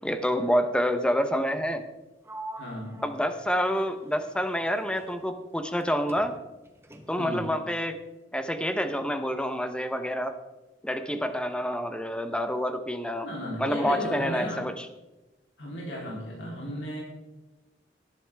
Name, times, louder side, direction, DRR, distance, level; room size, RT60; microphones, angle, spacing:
voice 1, 0.0-1.8 3.0-6.3 7.1-8.0 8.3-10.4 10.8-13.3 13.6-14.9, equal, 5° left, 9 dB, 0.9 m, -28 dB
Sliding door, 2.2-5.8 6.1-7.4, right 2 dB, 15° right, 1.2 m, -46 dB
voice 2, 2.6-3.0 7.2-7.5 13.2-14.6 15.6-17.0, equal, 85° left, -3 dB, 3.5 m, -35 dB
19.0 x 10.5 x 3.5 m, 1.1 s
head